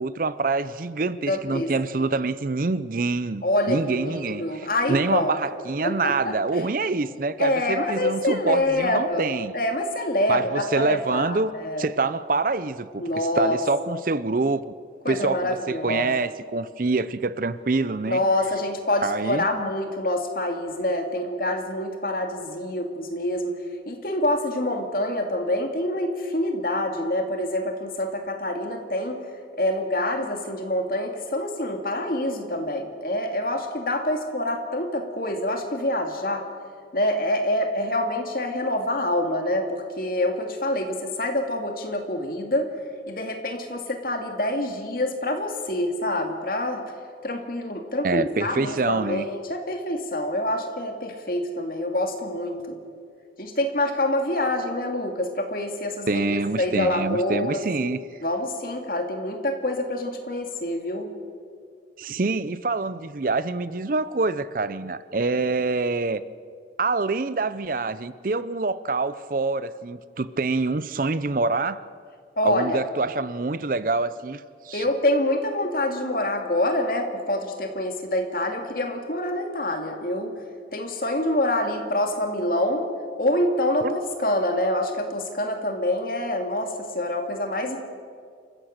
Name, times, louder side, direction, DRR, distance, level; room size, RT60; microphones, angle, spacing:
voice 1, 0.0-9.5 10.3-11.5 11.8-13.0 13.4-14.7 15.1-18.2 19.0-19.4 48.0-49.3 56.1-58.0 62.0-66.2 66.8-71.8 72.4-74.9 83.8-84.0, right 3 dB, 50° right, 0.6 m, -26 dB
voice 2, 1.3-1.7 3.4-5.4 5.8-6.6 7.4-9.2 9.5-11.9 13.0-13.6 15.0-16.1 18.1-23.6 23.9-29.2 29.6-36.5 36.9-42.7 43.1-46.8 47.2-52.8 53.4-57.6 58.2-61.1 72.4-72.8 74.7-80.3 80.7-82.9 83.2-87.8, left 1 dB, 55° left, 2.4 m, -26 dB
27.5 x 15.5 x 6.6 m
head